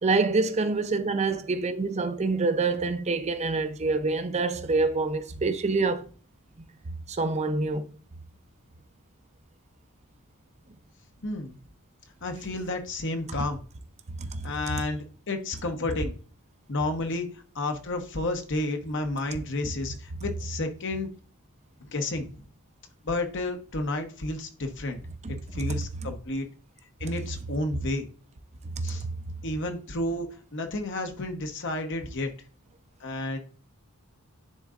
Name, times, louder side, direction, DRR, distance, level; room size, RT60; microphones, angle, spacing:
voice 1, 0.0-6.0 6.6-6.7 7.1-7.9 14.2-14.5 25.2-25.6 28.8-29.0, right 3 dB, 30° right, 0.6 m, -26 dB
voice 2, 11.2-11.6 12.2-13.6 14.4-16.1 16.7-17.3 17.5-21.1 21.9-22.4 23.0-25.0 25.3-26.5 27.0-28.1 28.8-29.0 29.4-32.3 33.0-33.4, left 2 dB, 55° left, 0.9 m, -31 dB
10.5 x 3.8 x 2.5 m
head